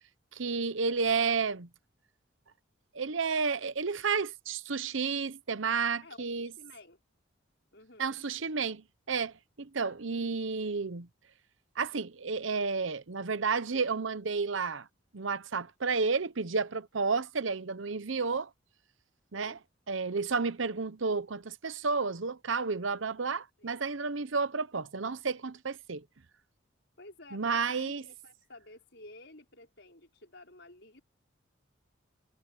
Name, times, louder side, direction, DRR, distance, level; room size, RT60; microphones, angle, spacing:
voice 1, 0.4-1.7 2.9-6.5 8.0-8.8 9.1-9.3 9.6-11.1 11.8-14.8 15.1-18.5 19.3-19.6 19.9-26.0 27.3-28.0, right 4 dB, 75° right, 0.9 m, -31 dB
voice 2, 6.6-7.0 7.7-8.2 19.3-19.6 23.6-23.9 27.0-31.0, left 2 dB, 60° left, 5.9 m, -53 dB
head